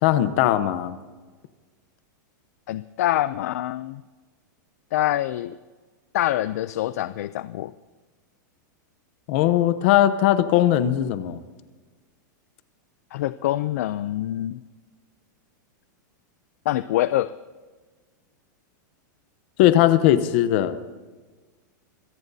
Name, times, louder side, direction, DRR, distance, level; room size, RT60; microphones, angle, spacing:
voice 1, 0.0-1.0 9.3-11.4 19.6-20.8, left 12 dB, 35° left, 12 dB, 0.8 m, -19 dB
voice 2, 2.7-4.0 4.9-5.6 6.1-7.7 13.1-14.6 16.7-17.3, left 14 dB, 50° left, 15 dB, 0.4 m, -25 dB
25.5 x 17.0 x 2.7 m, 1.4 s
supercardioid pair, 180°, 10 cm